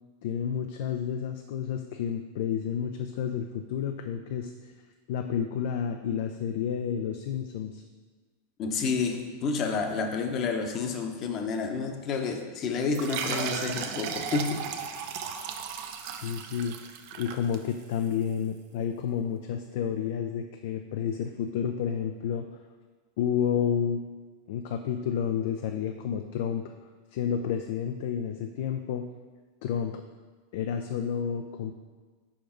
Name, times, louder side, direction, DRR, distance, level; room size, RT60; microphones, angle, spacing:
voice 1, 0.2-4.7 5.1-7.8 16.1-16.8 17.2-22.5 23.2-24.0 24.5-26.7 27.1-29.1 29.6-30.0 30.5-31.7, left 8 dB, 65° left, 6 dB, 0.4 m, -30 dB
voice 2, 8.6-14.6, left 4 dB, 40° left, 4 dB, 0.8 m, -29 dB
sound 1, 12.9-18.1, right 7 dB, 60° right, 0.6 m, -35 dB
5.0 x 4.7 x 5.1 m, 1.4 s
hypercardioid pair, 115°, 0 cm